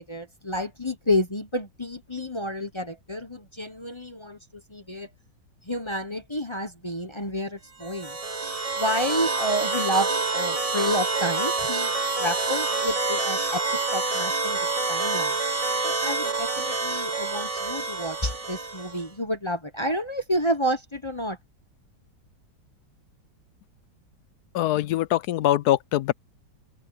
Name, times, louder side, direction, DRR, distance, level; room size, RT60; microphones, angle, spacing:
voice 1, 0.0-5.1 5.6-8.2 8.8-11.9 12.2-13.6 13.9-14.6 14.9-15.4 15.8-21.4, equal, 20° left, 1.1 m, -30 dB
sound 1, 7.8-19.1, right 3 dB, 20° right, 1.4 m, -27 dB
voice 2, 24.5-26.1, left 13 dB, 75° left, 1.1 m, -23 dB
open air
omnidirectional pair, 1.9 m